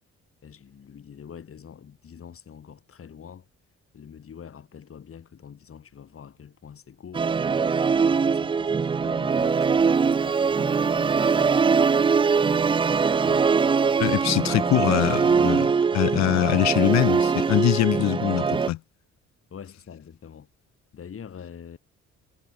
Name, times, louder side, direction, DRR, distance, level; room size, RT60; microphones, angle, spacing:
voice 1, 0.4-3.5 3.9-7.3 8.1-13.0 19.5-20.5 20.9-21.8, left 7 dB, 45° left, 3.0 m, -45 dB
Musical instrument, 7.1-18.7, right 5 dB, 20° right, 0.3 m, -22 dB
voice 2, 14.0-18.8, left 15 dB, 65° left, 0.5 m, -23 dB
cardioid pair, 90°, 30 cm